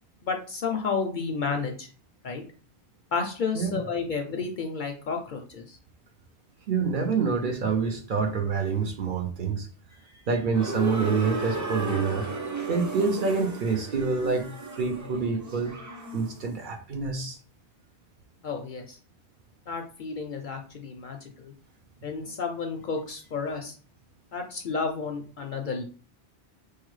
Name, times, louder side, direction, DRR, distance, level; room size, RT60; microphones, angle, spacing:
voice 1, 0.2-1.9 2.2-2.4 3.1-5.8 18.4-19.0 19.7-21.5 22.0-23.8 24.3-25.8, left 5 dB, 60° left, 3 dB, 0.6 m, -31 dB
voice 2, 6.7-9.7 10.3-12.2 12.7-15.7 16.1-17.4, right 5 dB, 55° right, 3 dB, 0.7 m, -27 dB
sound 1, 10.5-16.4, right 2 dB, 30° right, 0.3 m, -34 dB
4.7 x 2.2 x 3.1 m, 0.40 s
omnidirectional pair, 1.1 m